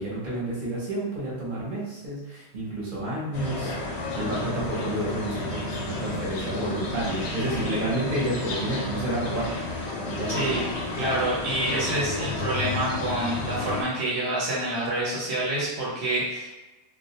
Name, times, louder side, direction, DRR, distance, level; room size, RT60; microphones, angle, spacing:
voice 1, 0.0-9.5 10.1-10.6, right 1 dB, 55° right, -6 dB, 0.9 m, -30 dB
sound 1, 3.3-13.8, left 2 dB, 85° left, 0.9 m, -32 dB
voice 2, 10.3-10.7 10.9-16.5, right 1 dB, 85° right, -7 dB, 1.0 m, -27 dB
2.3 x 2.0 x 2.7 m, 1.1 s
omnidirectional pair, 1.1 m